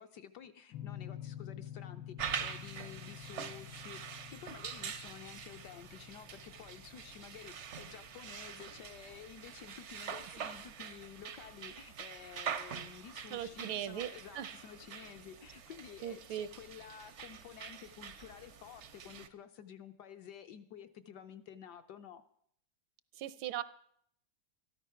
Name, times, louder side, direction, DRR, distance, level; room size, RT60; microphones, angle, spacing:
voice 1, 0.0-22.2, left 8 dB, 70° left, 9 dB, 1.1 m, -52 dB
sound 1, 0.7-9.4, left 11 dB, 85° left, 1.5 m, -49 dB
sound 2, 2.2-19.3, right 7 dB, 65° right, 0.7 m, -45 dB
voice 2, 13.3-14.1 14.3-14.5 16.0-16.5 23.2-23.6, right 11 dB, 80° right, 15 dB, 1.5 m, -38 dB
13.0 x 13.0 x 5.7 m, 0.68 s
omnidirectional pair, 2.2 m